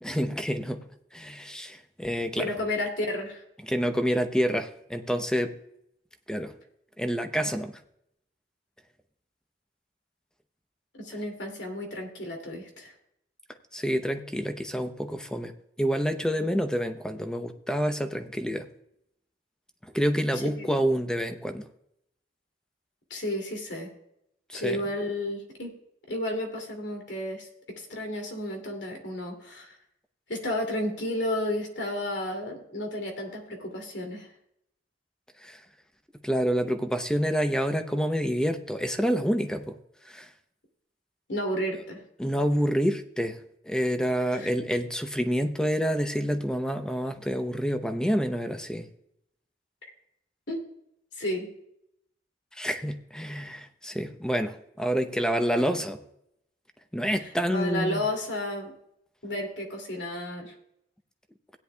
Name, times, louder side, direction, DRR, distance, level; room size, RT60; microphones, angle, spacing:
voice 1, 0.0-0.8 1.1-2.5 3.6-5.5 6.3-6.5 7.0-7.7 13.7-15.5 15.8-18.7 19.8-21.6 24.5-24.8 35.4-35.6 36.2-39.8 40.0-40.3 42.2-43.4 43.6-48.9 52.5-56.0 56.9-58.0, equal, 5° left, 8 dB, 0.6 m, -28 dB
voice 2, 2.4-3.4 11.0-12.9 20.4-20.7 23.1-23.9 24.5-25.7 26.1-27.5 27.8-29.8 30.3-34.3 41.3-42.0 44.3-44.5 50.5-50.7 51.1-51.5 57.5-58.7 59.2-60.5, left 1 dB, 85° left, 3 dB, 2.5 m, -32 dB
16.5 x 9.9 x 2.3 m, 0.77 s
head